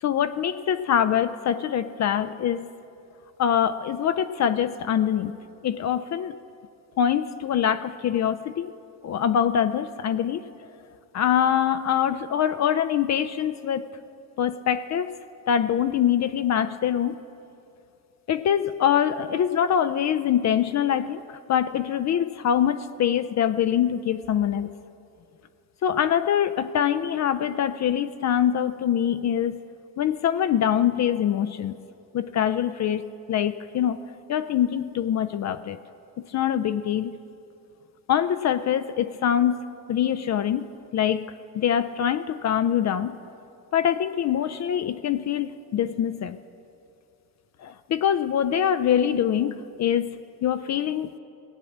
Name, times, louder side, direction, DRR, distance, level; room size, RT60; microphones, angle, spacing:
voice 1, 0.0-2.7 3.4-5.3 5.6-6.4 7.0-8.7 9.0-10.4 11.1-13.9 14.4-15.1 15.5-17.2 18.3-24.7 25.8-29.6 30.0-31.8 32.1-34.0 34.3-35.8 36.2-37.1 38.1-39.6 39.9-41.3 41.5-43.2 43.7-46.4 47.6-51.2, left 9 dB, 50° left, 11 dB, 0.5 m, -24 dB
17.5 x 8.3 x 7.2 m, 2.6 s
cardioid pair, 130°, 34 cm